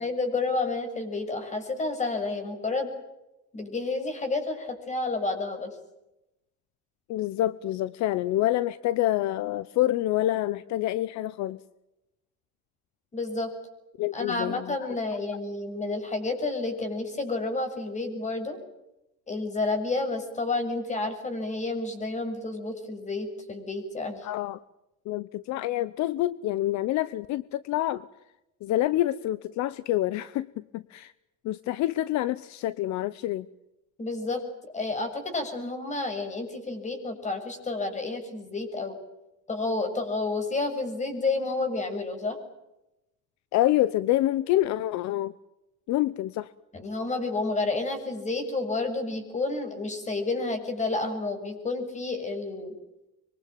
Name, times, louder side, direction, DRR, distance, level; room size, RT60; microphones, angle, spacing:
voice 1, 0.0-2.9 3.5-5.7 13.1-13.5 14.1-18.6 19.3-24.3 34.0-39.0 39.5-42.4 46.7-52.8, left 3 dB, 25° left, 8 dB, 6.8 m, -30 dB
voice 2, 7.1-11.6 14.0-14.8 24.2-24.6 25.1-28.1 28.6-31.1 31.4-33.5 43.5-45.3 45.9-46.5, left 14 dB, 65° left, 17 dB, 0.9 m, -27 dB
25.5 x 23.5 x 9.1 m, 0.94 s
cardioid pair, 140°, 30 cm